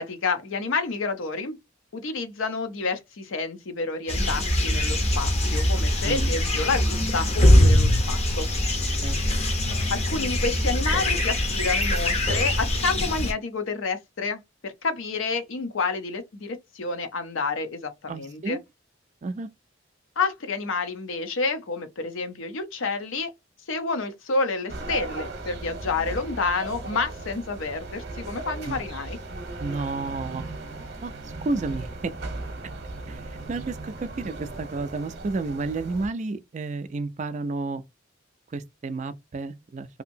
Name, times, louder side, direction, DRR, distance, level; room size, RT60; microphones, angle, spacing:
voice 1, 0.0-1.6 1.9-8.5 9.9-18.6 20.2-23.3 23.7-29.2, left 4 dB, 75° left, 0.6 m, -29 dB
sound 1, 4.1-13.3, left 1 dB, 30° left, 0.6 m, -22 dB
voice 2, 18.1-18.6 19.2-19.5 28.7-28.8 29.6-30.5 31.0-32.1 33.1-37.8 38.5-40.0, right 3 dB, 35° right, 0.3 m, -31 dB
sound 2, 24.7-36.1, right 2 dB, 55° right, 0.7 m, -37 dB
2.7 x 2.6 x 2.6 m
head